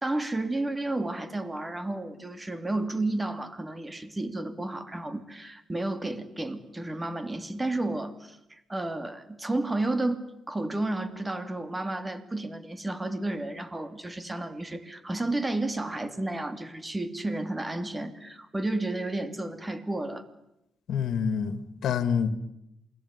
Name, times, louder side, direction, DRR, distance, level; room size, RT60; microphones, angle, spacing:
voice 1, 0.0-20.2, right 2 dB, 15° right, 2.9 m, -32 dB
voice 2, 20.9-22.3, left 7 dB, 70° left, 2.2 m, -27 dB
28.0 x 20.5 x 9.9 m
cardioid pair, 90°, 0 cm